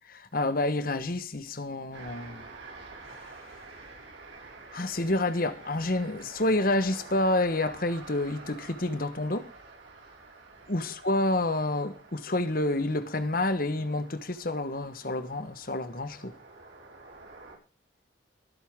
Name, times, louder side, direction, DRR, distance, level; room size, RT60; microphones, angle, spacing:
voice 1, 0.1-2.4 4.7-9.5 10.7-16.3, left 2 dB, 50° left, 1.3 m, -29 dB
sound 1, 1.9-17.6, right 3 dB, 90° right, 5.1 m, -49 dB
22.5 x 8.3 x 3.7 m
head